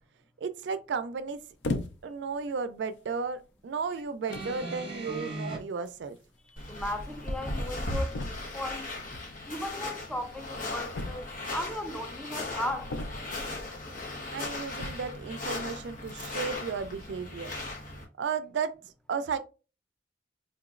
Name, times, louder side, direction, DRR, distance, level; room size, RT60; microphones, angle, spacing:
voice 1, 0.4-1.4 2.0-6.2 14.3-17.5 18.2-18.7 19.1-19.4, right 5 dB, 75° right, 0.4 m, -34 dB
sound 1, 1.6-2.2 3.0-3.2 4.0-4.1 4.3-4.6 5.9-6.0 6.2-6.3 6.5-6.6 8.1-8.7 10.9-11.6 12.9-13.5 14.7-15.2, left 2 dB, 85° left, 0.5 m, -36 dB
sound 2, 4.3-5.6 6.6-6.7, right 2 dB, 30° right, 0.8 m, -37 dB
sound 3, 6.6-18.0, left 2 dB, 50° left, 1.0 m, -37 dB
voice 2, 6.7-8.9 9.5-11.2 11.5-12.9, left 1 dB, 5° left, 0.4 m, -36 dB
4.4 x 2.9 x 2.4 m
head